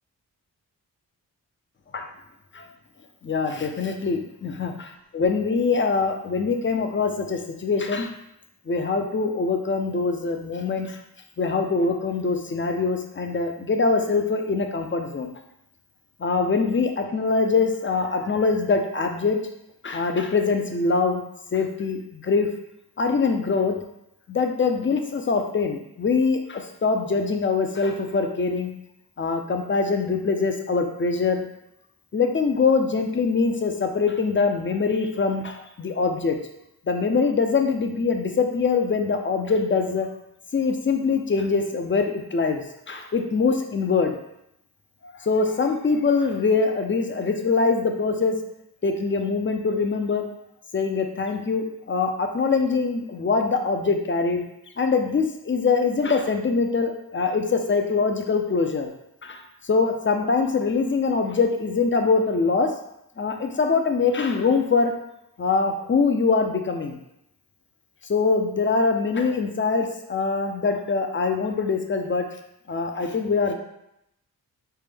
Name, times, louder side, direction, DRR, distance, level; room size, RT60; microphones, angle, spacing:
voice 1, 3.2-4.7 5.1-8.1 8.7-11.0 11.4-15.3 16.2-19.4 19.8-21.2 21.5-22.5 23.0-23.8 24.3-28.7 29.2-31.4 32.1-36.4 36.9-40.1 40.5-44.2 45.0-48.4 48.8-50.3 50.7-54.4 54.8-58.9 59.2-62.7 63.2-64.9 65.4-67.0 68.1-72.3 72.7-73.5, left 4 dB, 30° left, 5 dB, 0.4 m, -23 dB
3.3 x 2.1 x 3.3 m, 0.81 s
cardioid pair, 55°, 38 cm